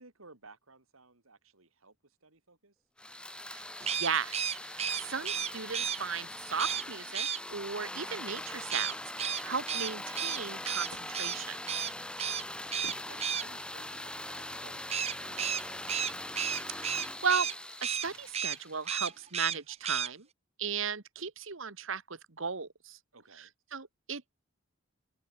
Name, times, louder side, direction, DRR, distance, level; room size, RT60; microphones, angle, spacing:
voice 1, 0.0-2.8 12.2-15.9 23.1-23.5, right 3 dB, 85° right, 4.0 m, -58 dB
sound 1, 3.0-19.2, left 1 dB, 5° left, 2.2 m, -42 dB
voice 2, 3.5-11.6 16.7-17.0 17.2-17.5 17.8-20.2 20.6-23.0 23.7-24.3, right 6 dB, 70° right, 1.5 m, -36 dB
sound 2, 3.8-6.0 6.6-6.9 7.1-7.4 8.7-11.4 11.7-11.9 12.2-12.4 12.7-13.5 14.9-17.6 17.8-18.1 18.3-18.6 18.9-19.6 19.8-20.1, right 8 dB, 30° right, 1.3 m, -33 dB
sound 3, 10.9-11.5 12.8-14.0, left 2 dB, 75° left, 5.4 m, -55 dB
head